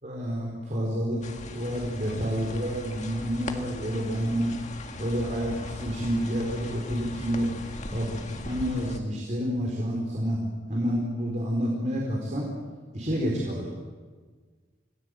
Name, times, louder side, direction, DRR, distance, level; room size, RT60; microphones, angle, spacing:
voice 1, 0.0-4.5 5.0-7.5 7.9-10.4 10.7-12.5 12.9-13.7, equal, 40° right, -2 dB, 4.3 m, -29 dB
sound 1, 1.2-9.0, left 2 dB, 40° left, 1.9 m, -39 dB
27.0 x 18.5 x 7.8 m, 1.5 s
head